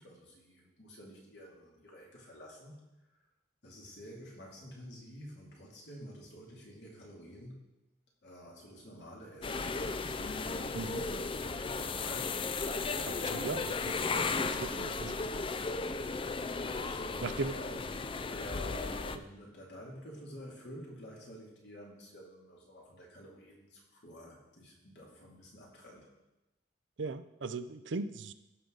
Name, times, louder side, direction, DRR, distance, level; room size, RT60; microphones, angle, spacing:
voice 1, 0.0-2.8 3.6-7.6 8.2-15.0 16.6-26.1, equal, 65° left, -3 dB, 2.8 m, -50 dB
sound 1, 9.4-19.2, left 4 dB, 30° left, 0.4 m, -35 dB
voice 2, 13.0-13.6 14.3-15.2 17.2-17.6 27.0-28.3, right 3 dB, 80° right, 11 dB, 0.6 m, -38 dB
15.0 x 6.6 x 4.0 m, 0.97 s
head